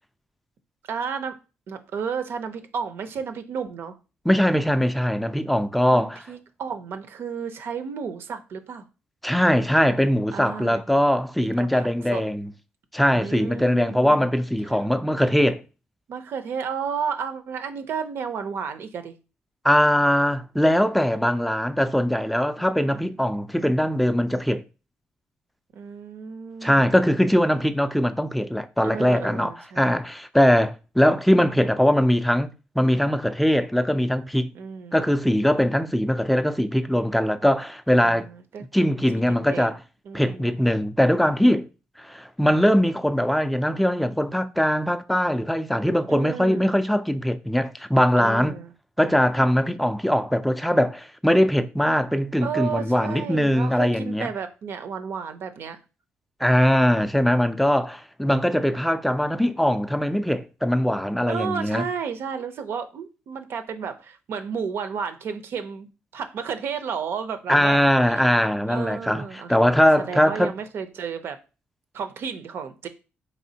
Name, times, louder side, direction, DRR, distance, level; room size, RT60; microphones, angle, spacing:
voice 1, 0.9-1.4 1.7-4.0 5.9-8.9 10.3-10.8 11.4-12.2 13.1-14.3 14.7-14.8 16.1-19.2 25.7-26.9 28.8-30.0 34.5-35.0 38.0-38.6 39.3-39.7 40.1-40.6 46.1-46.8 48.2-48.7 52.4-55.8 61.3-65.9 66.1-68.3 68.7-71.4 71.9-72.9, right 6 dB, 70° right, 0.5 m, -33 dB
voice 2, 4.3-6.2 9.2-12.5 12.9-15.6 19.6-24.6 26.6-34.5 34.9-38.3 38.7-39.8 40.1-41.7 42.0-48.6 49.0-54.3 56.4-61.8 67.5-70.5, equal, ahead, 0.3 m, -21 dB
4.1 x 3.3 x 2.7 m
cardioid pair, 105°, 4 cm